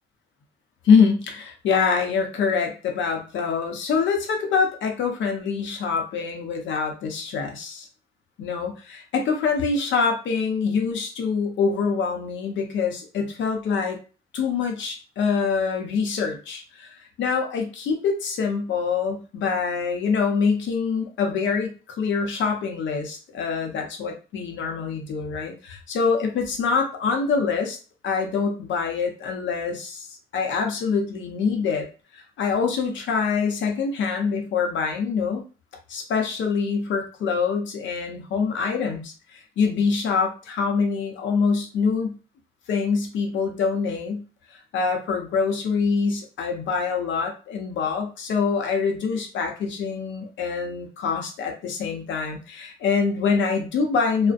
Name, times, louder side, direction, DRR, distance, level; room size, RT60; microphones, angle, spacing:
voice 1, 0.8-7.9 8.4-14.0 14.3-27.8 28.0-31.9 32.1-35.4 35.9-42.2 42.7-44.2 44.5-54.3, left 5 dB, 70° left, 3 dB, 0.7 m, -25 dB
2.5 x 2.1 x 2.4 m, 0.35 s
cardioid pair, 90°, 20 cm